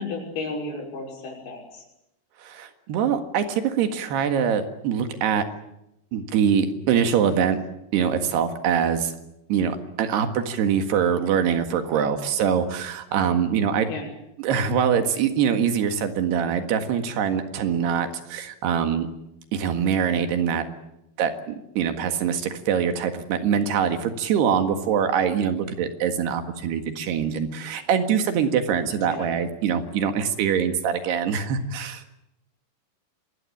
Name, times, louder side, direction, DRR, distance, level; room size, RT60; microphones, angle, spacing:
voice 1, 0.0-1.8 13.9-14.1 29.1-29.3, left 3 dB, 70° left, -3 dB, 8.0 m, -33 dB
voice 2, 2.4-5.5 6.1-7.6 7.9-9.1 9.5-13.9 14.4-19.1 19.5-20.6 21.2-32.0, right 7 dB, 85° right, 7 dB, 3.9 m, -24 dB
25.5 x 20.5 x 8.6 m, 0.85 s
omnidirectional pair, 4.6 m